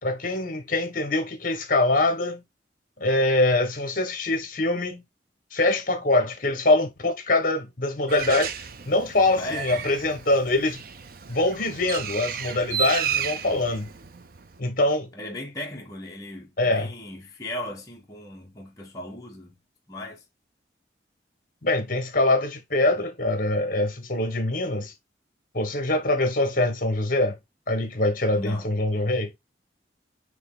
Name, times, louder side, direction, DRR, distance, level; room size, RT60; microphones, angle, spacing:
voice 1, 0.0-2.4 3.0-5.0 5.5-8.5 8.8-10.8 11.3-13.9 14.6-15.1 16.6-16.9 21.6-24.9 25.5-27.4 27.7-29.3, left 2 dB, 45° left, 1.5 m, -24 dB
Bird, 8.1-14.6, right 7 dB, 50° right, 0.5 m, -33 dB
voice 2, 9.4-9.7 15.1-19.6 19.9-20.2 28.3-28.7, left 1 dB, 20° left, 1.2 m, -37 dB
7.0 x 3.3 x 4.0 m
head